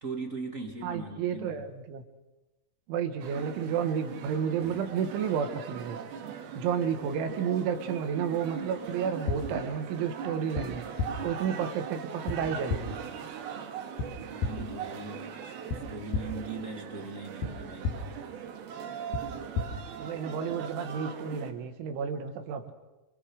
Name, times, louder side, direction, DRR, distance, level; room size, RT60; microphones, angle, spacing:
voice 1, 0.0-1.7 14.3-15.3 15.7-18.0, right 3 dB, 30° right, 2 dB, 1.5 m, -39 dB
voice 2, 0.8-2.0 2.9-6.0 6.6-10.8 11.2-13.0 20.0-22.7, right 7 dB, 80° right, 7 dB, 4.0 m, -31 dB
sound 1, 3.2-21.5, right 7 dB, 65° right, 3.3 m, -40 dB
sound 2, 9.3-9.4 10.5-10.6 11.0-11.1 12.3-12.4 12.7-12.8 14.0-14.1 14.4-14.5 15.7-15.8 16.1-16.2 17.4-17.5 17.8-17.9 19.1-19.2 19.5-19.7, left 5 dB, 60° left, 3.7 m, -30 dB
27.0 x 25.0 x 6.5 m, 1.1 s
omnidirectional pair, 5.4 m